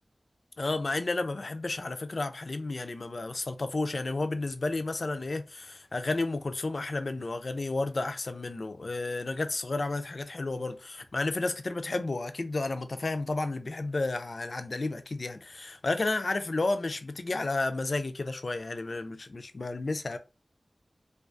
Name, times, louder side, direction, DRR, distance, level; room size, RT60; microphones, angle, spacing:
voice 1, 0.6-20.2, left 2 dB, 60° left, 0.3 m, -32 dB
2.3 x 2.2 x 2.5 m
wide cardioid pair, 55°, 0 cm